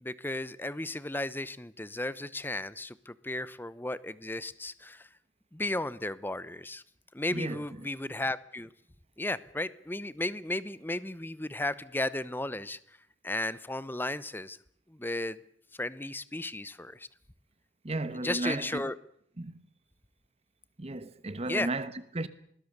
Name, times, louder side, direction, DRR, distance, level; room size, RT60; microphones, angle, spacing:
voice 1, 0.0-5.1 5.5-6.8 7.1-8.7 9.2-12.8 13.2-14.6 14.9-15.4 15.8-17.1 18.2-18.9 21.5-21.7, left 2 dB, 10° left, 0.9 m, -34 dB
voice 2, 7.3-7.9 17.8-18.8 19.4-19.6 20.8-22.3, right 2 dB, 35° right, 1.1 m, -34 dB
26.0 x 20.5 x 6.8 m
head